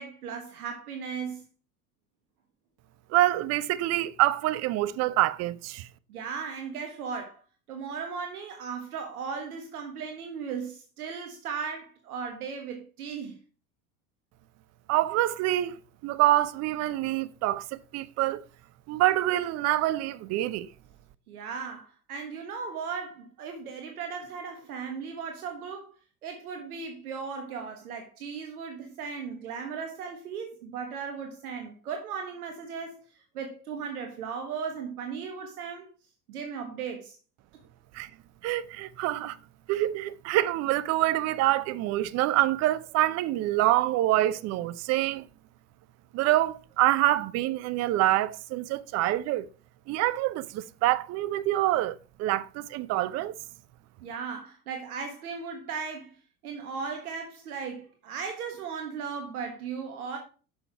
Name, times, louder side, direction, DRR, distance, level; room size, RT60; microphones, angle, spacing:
voice 1, 0.0-1.4 6.1-7.4 7.7-13.4 21.3-25.9 26.2-33.0 33.3-35.9 36.3-37.2 54.0-56.2 56.4-60.2, right 6 dB, 75° right, 1.5 m, -37 dB
voice 2, 3.1-5.9 14.9-15.8 16.0-18.4 18.9-20.7 37.9-38.1 38.4-39.4 39.7-45.3 46.1-49.5 49.9-53.4, right 15 dB, 35° right, 0.5 m, -26 dB
6.8 x 6.1 x 4.5 m
hypercardioid pair, 80°, 45 cm